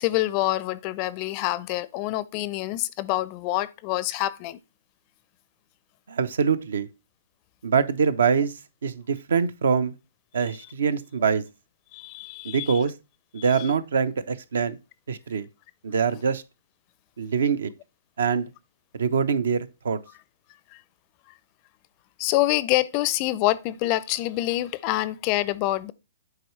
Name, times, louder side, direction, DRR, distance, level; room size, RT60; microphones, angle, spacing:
voice 1, 0.0-4.6 11.9-12.8 13.6-13.7 20.7-20.8 22.2-25.9, left 16 dB, 30° left, 0.4 m, -26 dB
voice 2, 6.1-6.9 7.6-8.5 8.8-9.9 10.3-11.4 12.4-12.9 13.3-14.8 15.1-15.5 15.8-16.4 17.2-17.7 18.2-18.5 18.9-20.0, right 6 dB, 75° right, 0.7 m, -24 dB
7.8 x 4.7 x 3.2 m
hypercardioid pair, 145°, 0 cm